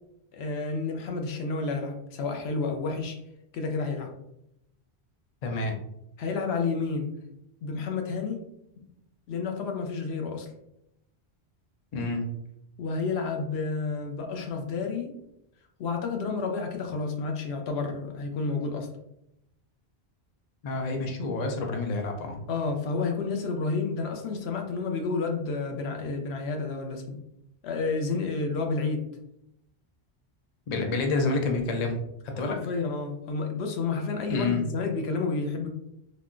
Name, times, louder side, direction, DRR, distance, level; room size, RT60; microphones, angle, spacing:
voice 1, 0.3-3.2 3.5-4.1 6.2-7.2 7.6-8.4 9.3-10.5 12.8-15.2 15.8-18.9 22.5-27.2 27.6-29.0 32.5-35.7, left 4 dB, 75° left, 3 dB, 0.8 m, -30 dB
voice 2, 5.4-5.7 11.9-12.3 20.6-22.4 30.7-32.6 34.3-34.6, left 3 dB, 50° left, 2 dB, 0.5 m, -28 dB
3.5 x 2.2 x 2.4 m, 0.80 s
omnidirectional pair, 1.1 m